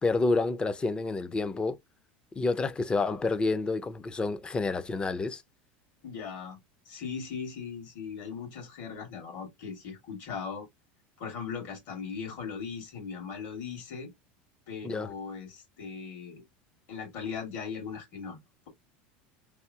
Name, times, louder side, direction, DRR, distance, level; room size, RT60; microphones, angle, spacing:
voice 1, 0.0-1.8 2.4-5.4 14.8-15.1, left 3 dB, 20° left, 0.5 m, -29 dB
voice 2, 6.0-6.6 6.9-10.7 11.2-14.1 14.7-16.4 16.9-18.4, left 6 dB, 65° left, 2.1 m, -39 dB
3.5 x 2.6 x 2.7 m
supercardioid pair, 115°, 5 cm